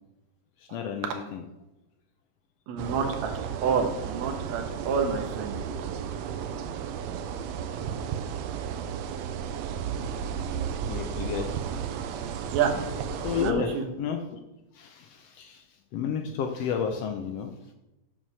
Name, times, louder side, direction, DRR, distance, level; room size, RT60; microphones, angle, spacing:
voice 1, 0.7-1.4 10.9-11.5 13.2-14.4 14.7-15.6 15.9-17.5, left 7 dB, 80° left, 5 dB, 1.4 m, -31 dB
voice 2, 2.7-3.3 3.6-5.6 12.5-12.9 13.4-13.8, right 6 dB, 65° right, 4 dB, 2.2 m, -28 dB
sound 1, 2.8-13.5, right 7 dB, 85° right, 1.5 m, -33 dB
7.8 x 5.8 x 6.2 m, 0.96 s
omnidirectional pair, 3.6 m